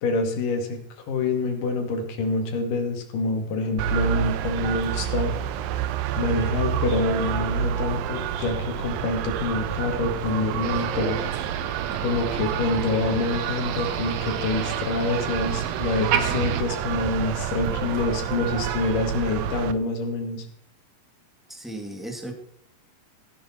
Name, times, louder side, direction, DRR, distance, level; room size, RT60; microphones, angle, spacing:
voice 1, 0.0-0.8 1.1-5.3 6.2-11.2 12.0-20.5, left 3 dB, 65° left, 3 dB, 3.7 m, -26 dB
sound 1, 3.8-19.7, right 9 dB, 85° right, 2.5 m, -29 dB
Motor vehicle (road), 10.6-16.6, right 8 dB, 65° right, 1.9 m, -31 dB
voice 2, 21.5-22.3, right 1 dB, ahead, 2 dB, 1.1 m, -35 dB
15.5 x 10.0 x 4.4 m, 0.72 s
omnidirectional pair, 4.2 m